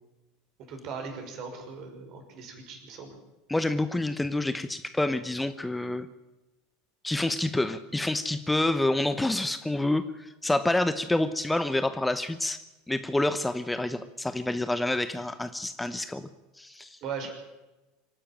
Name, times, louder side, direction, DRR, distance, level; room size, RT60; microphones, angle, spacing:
voice 1, 0.7-3.1 17.0-17.3, right 5 dB, 45° right, 4 dB, 5.9 m, -38 dB
voice 2, 3.5-6.1 7.0-12.6 12.9-16.3 16.6-17.0, left 2 dB, 10° left, 12 dB, 1.0 m, -28 dB
25.5 x 11.5 x 9.1 m, 1.1 s
figure-of-eight pair, 75°, 0 cm